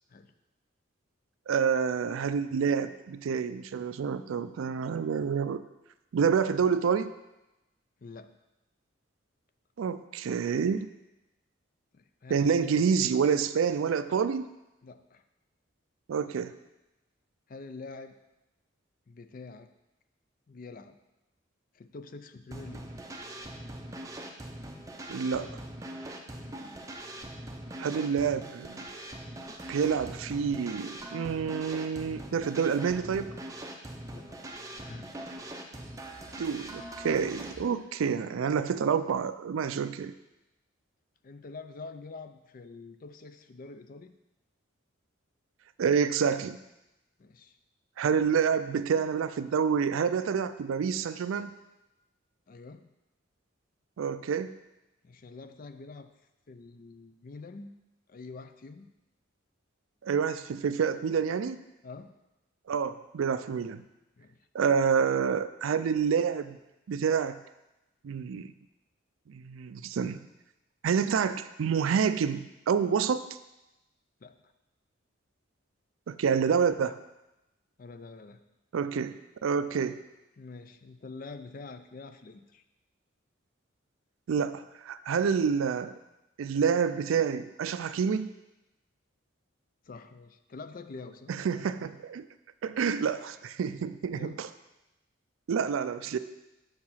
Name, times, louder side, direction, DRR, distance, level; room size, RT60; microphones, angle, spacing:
voice 1, 1.5-5.6 6.1-7.1 9.8-10.9 12.3-14.5 16.1-16.5 25.1-25.5 27.8-28.9 29.7-33.4 36.4-40.1 45.8-46.6 48.0-51.5 54.0-54.5 60.0-61.6 62.7-63.8 64.5-66.6 66.9-67.4 68.0-68.5 69.3-70.3 70.8-73.3 76.1-77.0 78.7-79.2 79.4-80.0 84.3-85.9 86.4-88.3 91.3-92.3 92.6-94.5 95.5-96.2, right 6 dB, 80° right, 13 dB, 0.4 m, -28 dB
voice 2, 8.0-8.4 11.9-13.0 14.8-15.2 17.5-18.1 19.1-19.7 20.5-21.0 21.7-22.9 26.3-26.8 34.1-35.1 41.2-44.1 47.2-47.6 52.5-52.9 55.0-56.1 56.5-57.8 58.1-58.9 61.8-62.1 64.2-64.5 74.2-74.4 77.8-78.4 80.4-82.6 89.9-91.3 94.1-94.4, left 3 dB, 45° left, 9 dB, 0.4 m, -46 dB
sound 1, 22.5-37.6, right 1 dB, 15° right, 0.5 m, -42 dB
6.5 x 4.7 x 5.6 m, 0.97 s
head